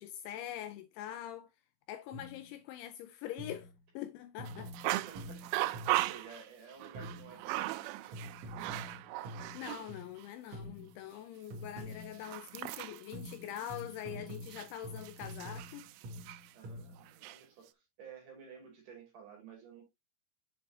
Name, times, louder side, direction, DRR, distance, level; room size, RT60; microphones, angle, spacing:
voice 1, 0.0-1.5 1.9-4.7 9.2-15.9, left 11 dB, 80° left, 2.7 m, -44 dB
sound 1, 2.1-2.5 3.4-3.8 4.4-6.2 6.9-7.4 8.1-10.2 10.5-11.0 11.5-12.3 13.1-17.1, equal, 65° right, 1.7 m, -47 dB
sound 2, 4.5-9.9 10.2-10.3 11.8-16.5 17.0-17.4, right 17 dB, 85° right, 3.1 m, -38 dB
voice 2, 4.9-5.4 5.9-8.8 16.5-19.8, right 6 dB, 50° right, 3.4 m, -53 dB
7.6 x 5.3 x 2.7 m
omnidirectional pair, 5.7 m